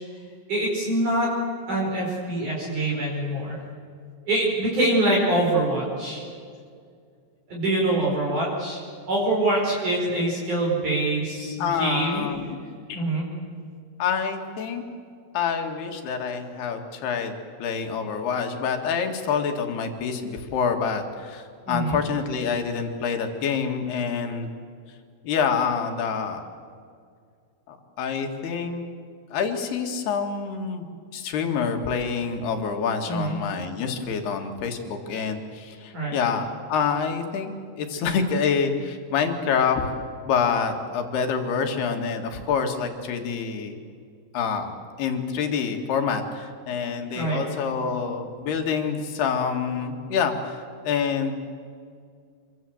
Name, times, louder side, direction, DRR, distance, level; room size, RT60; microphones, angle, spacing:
voice 1, 0.5-1.3 1.7-3.6 4.3-6.2 7.5-8.8 9.1-12.3 12.9-13.3 21.6-22.0 33.1-33.4 35.9-36.2 47.1-47.4, right 1 dB, 40° right, -4 dB, 6.2 m, -24 dB
voice 2, 11.6-12.6 12.9-13.0 14.0-14.8 15.3-24.5 25.2-26.4 27.7-28.9 29.3-30.9 31.1-37.5 37.8-39.9 40.3-43.8 44.3-44.7 45.0-51.3, left 6 dB, 60° left, 4 dB, 3.5 m, -27 dB
27.0 x 23.5 x 7.9 m, 2.2 s
omnidirectional pair, 5.9 m